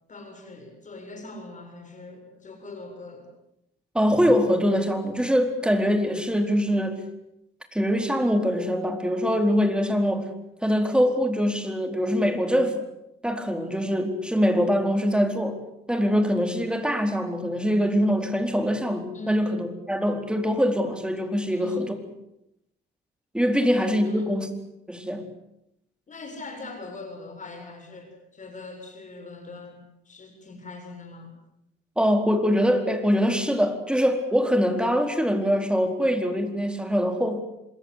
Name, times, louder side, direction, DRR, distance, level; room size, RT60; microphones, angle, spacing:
voice 1, 0.1-3.3 19.1-19.5 21.5-21.9 23.5-23.7 24.0-24.4 26.1-29.8 30.0-31.3, left 2 dB, 40° left, 4 dB, 7.5 m, -41 dB
voice 2, 3.9-7.0 7.7-10.3 10.6-12.8 13.2-15.6 15.9-21.9 23.3-24.5 24.9-25.3 32.0-37.4, equal, 5° right, 6 dB, 4.3 m, -23 dB
26.5 x 21.0 x 8.4 m, 0.84 s
cardioid pair, 90°, 20 cm